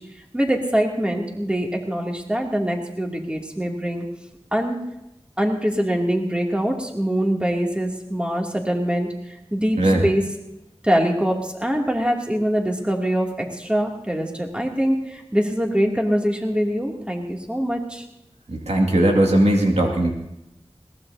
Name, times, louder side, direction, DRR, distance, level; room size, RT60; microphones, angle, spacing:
voice 1, 0.3-4.0 4.5-4.8 5.4-10.2 10.8-18.0, equal, 10° right, 0 dB, 2.7 m, -23 dB
voice 2, 9.8-10.1 18.5-20.1, right 1 dB, 90° right, 0 dB, 2.3 m, -18 dB
21.0 x 18.5 x 2.8 m, 0.90 s
wide cardioid pair, 55°, 11 cm